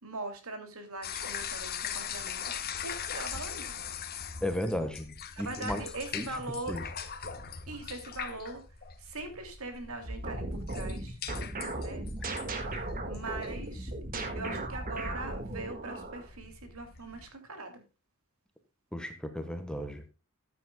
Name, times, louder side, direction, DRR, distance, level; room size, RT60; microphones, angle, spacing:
voice 1, 0.0-3.7 5.3-6.9 7.7-8.6 9.0-11.2 11.8-12.0 13.1-13.9 14.3-17.8, right 2 dB, 70° right, 2.7 m, -41 dB
sound 1, 1.0-17.3, left 7 dB, 45° left, 1.2 m, -41 dB
voice 2, 4.4-5.8 6.1-6.3 6.7-6.8 18.9-20.1, left 1 dB, 5° left, 1.3 m, -34 dB
sound 2, 10.1-16.3, right 2 dB, 40° right, 1.8 m, -37 dB
14.5 x 9.3 x 2.2 m
head